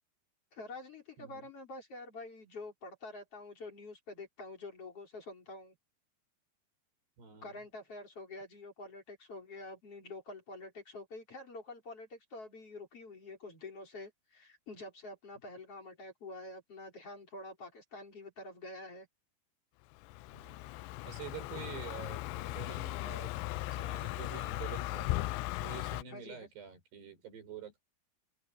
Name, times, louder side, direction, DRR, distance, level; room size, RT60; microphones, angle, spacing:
voice 1, 0.5-5.8 7.4-19.1 26.1-26.5, left 2 dB, 35° left, 5.4 m, -47 dB
voice 2, 7.2-7.6 20.3-20.7 21.0-23.3 23.7-25.1 25.6-27.8, right 7 dB, 70° right, 8.5 m, -47 dB
Car passing by, 20.0-26.0, left 18 dB, 85° left, 2.9 m, -38 dB
open air
omnidirectional pair, 5.0 m